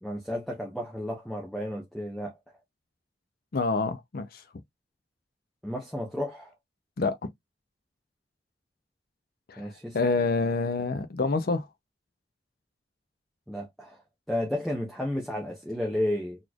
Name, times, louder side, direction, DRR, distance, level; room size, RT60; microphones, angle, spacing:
voice 1, 0.0-2.3 5.6-6.5 9.6-10.0 13.5-14.0 14.3-16.4, left 1 dB, ahead, 0.7 m, -32 dB
voice 2, 3.5-4.4 7.0-7.2 9.5-11.7, left 3 dB, 55° left, 0.5 m, -27 dB
4.1 x 3.0 x 2.3 m
head